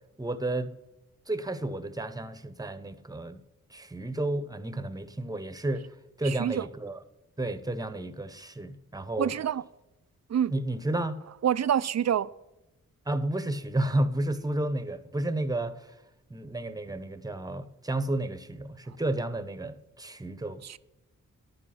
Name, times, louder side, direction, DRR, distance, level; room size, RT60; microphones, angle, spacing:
voice 1, 0.2-0.7 1.3-3.4 3.7-5.9 6.2-7.0 7.4-9.3 10.5-11.2 13.1-16.0 16.3-20.8, right 1 dB, 10° right, 0.9 m, -32 dB
voice 2, 6.2-6.7 9.2-9.6 10.3-10.5 11.4-12.3 20.6-20.8, right 9 dB, 50° right, 0.4 m, -27 dB
11.0 x 7.6 x 5.7 m
cardioid pair, 55°, 34 cm